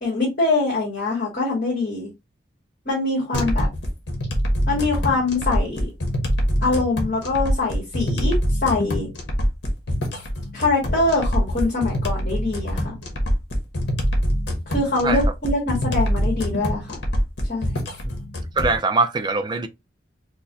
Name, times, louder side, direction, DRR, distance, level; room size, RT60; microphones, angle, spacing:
voice 1, 0.0-2.1 2.8-3.7 4.7-5.9 6.6-9.1 10.5-13.0 14.7-17.0 17.5-17.8, left 3 dB, 55° left, 1.6 m, -23 dB
sound 1, 3.3-18.8, equal, 75° left, 1.1 m, -24 dB
voice 2, 18.6-19.7, right 3 dB, 25° right, 0.4 m, -22 dB
4.5 x 2.2 x 2.7 m
head